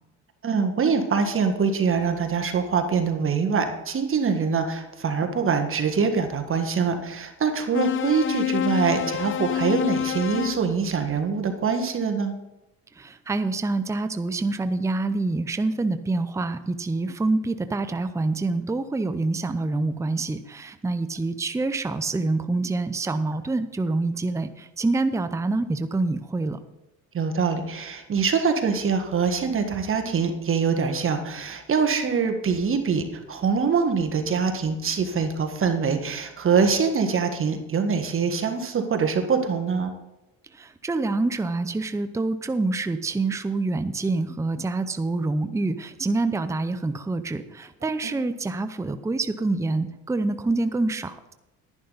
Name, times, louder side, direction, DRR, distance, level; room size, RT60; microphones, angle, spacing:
voice 1, 0.4-12.3 27.1-39.9, right 5 dB, 40° right, 5 dB, 1.7 m, -24 dB
sound 1, 7.7-10.7, left 9 dB, 35° left, 0.6 m, -27 dB
voice 2, 13.0-26.6 40.5-51.3, right 3 dB, 10° right, 11 dB, 0.6 m, -26 dB
11.0 x 10.5 x 4.0 m, 0.99 s
supercardioid pair, 85°, 33 cm